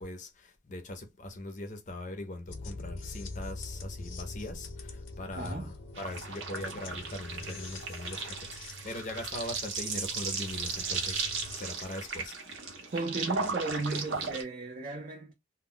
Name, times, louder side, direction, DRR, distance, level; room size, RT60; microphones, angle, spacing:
voice 1, 0.0-11.3 11.5-12.4, left 1 dB, 40° left, 0.5 m, -41 dB
sound 1, 2.5-11.6, left 3 dB, 85° left, 0.6 m, -44 dB
voice 2, 5.4-5.7 12.9-15.3, right 2 dB, 40° right, 0.5 m, -35 dB
sound 2, 5.9-14.4, right 4 dB, 85° right, 0.8 m, -36 dB
2.1 x 2.1 x 3.7 m
head